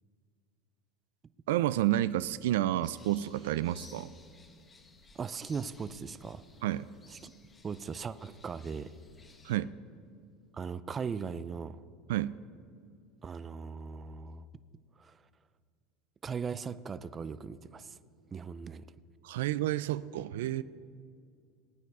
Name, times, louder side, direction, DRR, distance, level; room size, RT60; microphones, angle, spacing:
voice 1, 1.5-4.1 6.6-6.8 9.4-9.7 12.1-12.3 19.2-20.6, right 14 dB, 85° right, 17 dB, 0.3 m, -30 dB
sound 1, 2.8-9.6, left 3 dB, 20° left, 1.2 m, -58 dB
voice 2, 5.2-6.4 7.2-7.3 7.6-8.9 10.5-11.8 13.2-14.5 15.0-15.2 16.2-18.0 18.3-18.8, right 6 dB, 25° right, 15 dB, 0.4 m, -38 dB
19.5 x 9.4 x 4.8 m, 2.3 s
supercardioid pair, 125°, 0 cm